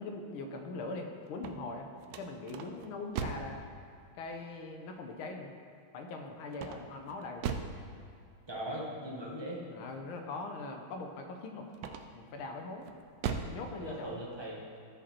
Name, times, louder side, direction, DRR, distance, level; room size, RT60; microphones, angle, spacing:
voice 1, 0.0-1.9 2.2-3.6 4.1-5.5 5.9-7.5 8.7-8.8 9.7-11.7 12.1-12.9 13.4-14.2, left 3 dB, 75° left, 4 dB, 1.7 m, -41 dB
sound 1, 1.3-3.6 6.5-7.8 11.7-12.3 12.8-13.6, right 6 dB, 80° right, 0.8 m, -38 dB
voice 2, 8.5-9.6 13.8-14.8, right 1 dB, 15° right, -4 dB, 1.2 m, -40 dB
14.0 x 5.1 x 4.4 m, 2.4 s
omnidirectional pair, 2.3 m